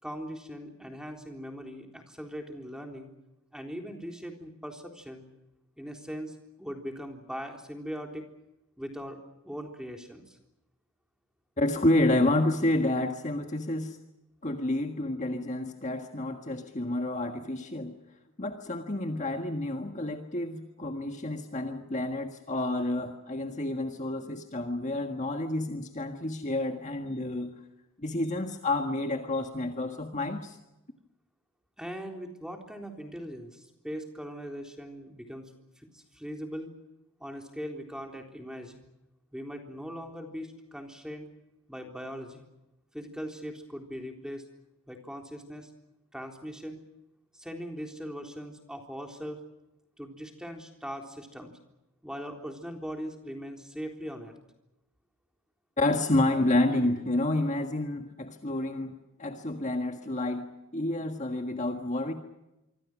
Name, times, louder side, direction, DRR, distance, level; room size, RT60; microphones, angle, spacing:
voice 1, 0.0-3.1 3.5-5.2 5.8-8.3 8.8-10.4 31.8-36.7 37.2-38.9 39.3-41.3 41.7-42.5 42.9-44.4 44.9-45.7 46.1-46.8 47.3-49.4 50.0-51.6 52.0-54.4, equal, 5° right, 3 dB, 3.7 m, -40 dB
voice 2, 11.6-14.0 14.4-18.0 18.4-27.5 28.0-30.6 55.8-62.1, left 1 dB, 35° left, 5 dB, 1.7 m, -29 dB
26.5 x 25.0 x 6.2 m, 0.96 s
head